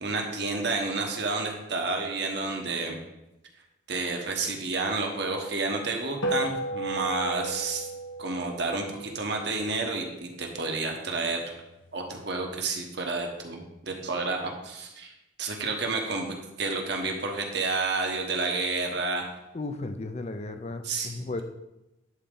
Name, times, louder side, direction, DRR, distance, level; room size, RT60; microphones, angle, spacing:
voice 1, 0.0-3.0 3.9-7.9 8.2-11.5 11.9-15.1 15.4-19.3 20.8-21.4, right 3 dB, 55° right, 2 dB, 1.1 m, -30 dB
sound 1, 6.2-10.9, right 1 dB, 85° left, 1.1 m, -35 dB
voice 2, 19.5-21.4, left 2 dB, 35° left, 8 dB, 0.5 m, -35 dB
11.0 x 4.1 x 3.8 m, 0.95 s
head